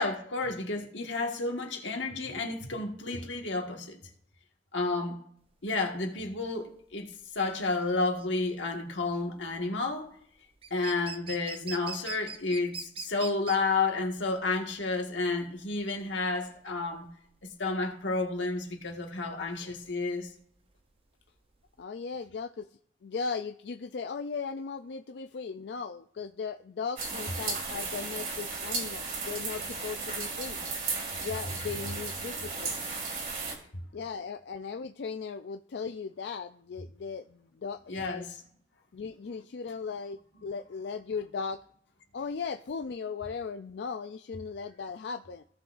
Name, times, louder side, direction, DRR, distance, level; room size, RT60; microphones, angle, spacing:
voice 1, 0.0-4.0 4.7-5.2 5.6-10.1 10.7-17.1 17.6-20.3 37.9-38.2, left 3 dB, 85° left, 1.7 m, -31 dB
sound 1, 5.5-21.8, right 5 dB, 30° right, 0.6 m, -45 dB
voice 2, 21.8-22.7 23.0-30.6 31.2-32.8 33.9-38.3 38.9-41.6 42.1-45.4, left 5 dB, 65° left, 0.4 m, -37 dB
sound 2, 27.0-33.5, right 4 dB, 50° right, 2.2 m, -35 dB
16.5 x 6.1 x 2.5 m
head